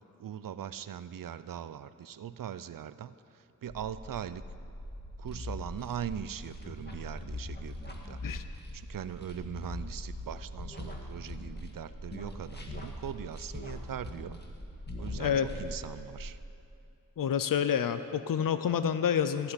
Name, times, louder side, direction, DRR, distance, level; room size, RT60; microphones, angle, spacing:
voice 1, 0.2-4.4 5.2-8.2 8.5-14.4 15.0-16.4, right 9 dB, 90° right, 14 dB, 0.5 m, -41 dB
sound 1, 3.7-16.3, right 1 dB, 45° left, 3.0 m, -45 dB
sound 2, 5.3-11.8 12.1-14.6 14.9-15.9, left 3 dB, 30° left, 1.7 m, -43 dB
voice 2, 15.1-15.5 17.2-19.5, left 8 dB, 80° left, 11 dB, 0.5 m, -28 dB
15.5 x 6.1 x 9.7 m, 2.7 s
wide cardioid pair, 55°, 32 cm